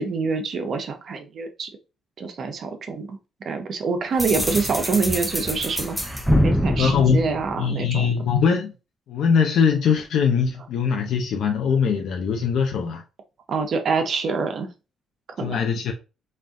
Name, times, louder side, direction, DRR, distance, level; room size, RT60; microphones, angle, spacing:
voice 1, 0.0-1.7 2.2-8.1 13.5-14.7 15.4-15.6, right 4 dB, 55° right, 0.9 m, -26 dB
sound 1, 4.2-8.0, equal, ahead, 0.6 m, -24 dB
voice 2, 6.8-7.2 7.5-8.7 9.1-13.0 15.4-15.9, left 6 dB, 75° left, 0.6 m, -21 dB
4.3 x 2.6 x 3.6 m
cardioid pair, 90°, 0 cm